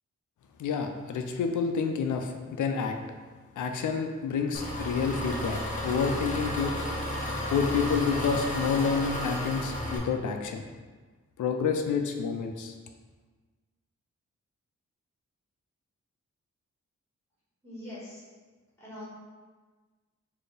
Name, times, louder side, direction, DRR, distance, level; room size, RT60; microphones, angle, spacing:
voice 1, 0.6-3.0 3.6-6.9 7.5-10.7 11.4-12.7, left 5 dB, 85° left, 5 dB, 0.5 m, -29 dB
Engine, 4.5-10.0, equal, 25° left, 0.6 m, -33 dB
voice 2, 17.6-18.2 18.8-19.0, left 1 dB, 10° left, -9 dB, 1.5 m, -42 dB
4.2 x 2.7 x 3.3 m, 1.4 s
wide cardioid pair, 170°, 29 cm